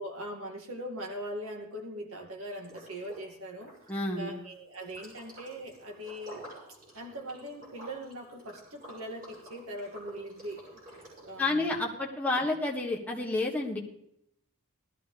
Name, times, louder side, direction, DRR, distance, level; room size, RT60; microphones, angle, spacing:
voice 1, 0.0-3.7 4.2-6.5 6.9-10.6 11.2-12.5, right 1 dB, 75° right, 2 dB, 2.2 m, -41 dB
Liquid, 2.6-3.3 3.5-11.5, right 1 dB, 40° right, 6.4 m, -50 dB
voice 2, 3.9-4.3 11.4-13.8, left 2 dB, 5° left, -2 dB, 1.4 m, -30 dB
18.5 x 13.0 x 3.4 m, 0.78 s
head